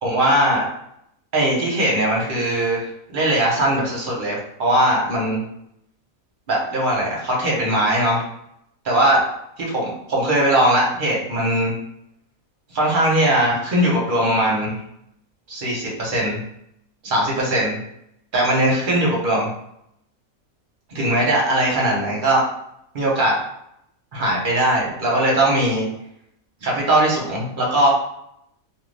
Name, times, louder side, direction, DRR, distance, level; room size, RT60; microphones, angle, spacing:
voice 1, 0.0-0.7 1.3-5.4 6.5-8.3 8.8-9.3 9.6-11.7 12.7-14.8 15.5-16.4 17.0-17.8 18.3-19.5 20.9-22.5 22.9-23.4 24.1-25.9 26.6-27.9, right 1 dB, 45° right, -3 dB, 0.8 m, -20 dB
2.5 x 2.4 x 3.2 m, 0.76 s
omnidirectional pair, 1.5 m